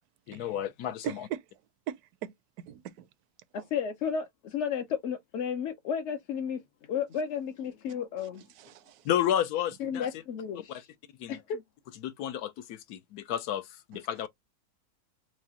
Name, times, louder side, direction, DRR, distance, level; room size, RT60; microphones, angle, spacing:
voice 1, 0.3-1.3 9.0-10.1 10.7-10.8 11.2-11.4 12.0-14.3, left 10 dB, 75° left, 1.1 m, -31 dB
voice 2, 1.0-1.4 1.9-3.1 8.6-9.0, right 11 dB, 75° right, 1.1 m, -39 dB
voice 3, 3.5-8.4 9.8-10.9 11.3-11.6, left 7 dB, 60° left, 0.8 m, -33 dB
4.8 x 2.2 x 2.7 m
omnidirectional pair, 1.7 m